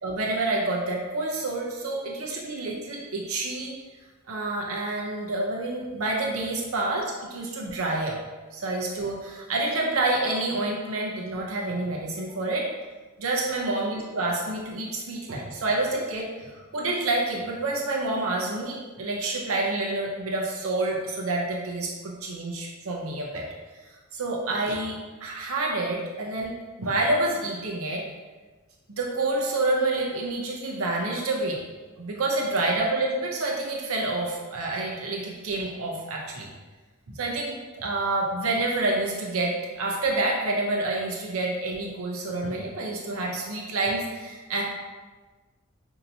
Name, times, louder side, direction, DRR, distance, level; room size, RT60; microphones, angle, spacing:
voice 1, 0.0-3.7 4.3-8.2 8.5-12.7 13.2-23.4 24.1-26.5 26.8-28.0 28.9-31.6 32.0-36.5 37.2-44.6, right 2 dB, 90° right, -1 dB, 0.7 m, -28 dB
5.3 x 2.8 x 2.7 m, 1.3 s
head